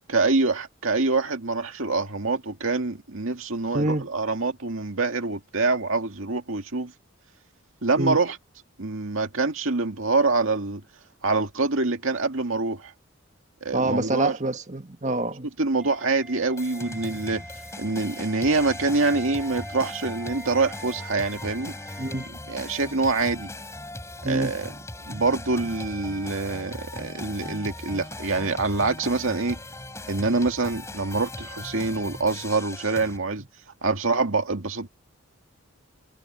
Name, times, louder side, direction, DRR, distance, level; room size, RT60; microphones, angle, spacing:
voice 1, 0.1-6.9 7.8-8.4 8.8-10.8 11.2-12.9 13.6-14.4 15.6-17.4 17.8-21.7 22.5-23.5 24.2-24.7 25.1-29.6 30.1-33.4 33.8-34.9, right 3 dB, 80° right, 2.1 m, -25 dB
voice 2, 3.7-4.1 8.0-8.2 13.7-15.5 22.0-22.3 24.2-24.5, right 2 dB, 35° right, 1.7 m, -26 dB
sound 1, 15.8-22.3, right 1 dB, 5° right, 7.7 m, -43 dB
sound 2, 16.6-33.2, left 1 dB, 15° left, 6.0 m, -39 dB
head